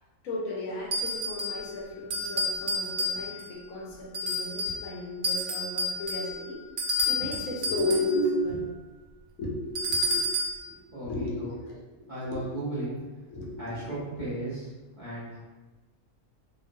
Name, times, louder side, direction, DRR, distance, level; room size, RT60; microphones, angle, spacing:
voice 1, 0.2-6.6 7.1-8.7 9.4-10.3 10.7-11.8 12.3-12.5 13.3-14.0, left 1 dB, 70° left, -3 dB, 1.0 m, -33 dB
sound 1, 0.9-1.7 2.1-3.5 4.1-4.8 5.2-8.2 9.7-10.6, left 1 dB, 70° right, 0.4 m, -30 dB
voice 2, 10.7-11.5 12.1-13.0 13.6-14.7 14.9-15.4, right 1 dB, 40° right, -11 dB, 0.8 m, -35 dB
2.9 x 2.5 x 2.6 m, 1.2 s
omnidirectional pair, 1.6 m